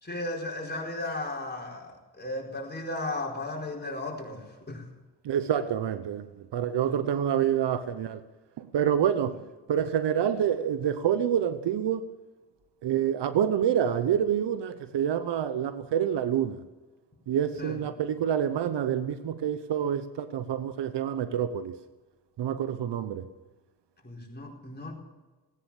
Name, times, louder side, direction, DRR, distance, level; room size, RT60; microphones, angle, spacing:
voice 1, 0.0-4.8 6.9-7.0 9.3-9.4 17.6-17.8 24.0-24.9, left 2 dB, 25° left, 4.6 m, -35 dB
voice 2, 5.2-8.2 8.6-9.4 9.7-12.0 12.8-16.6 17.3-21.7 22.4-23.3, right 9 dB, 75° right, 1.0 m, -27 dB
18.0 x 9.9 x 7.2 m
cardioid pair, 60°, 42 cm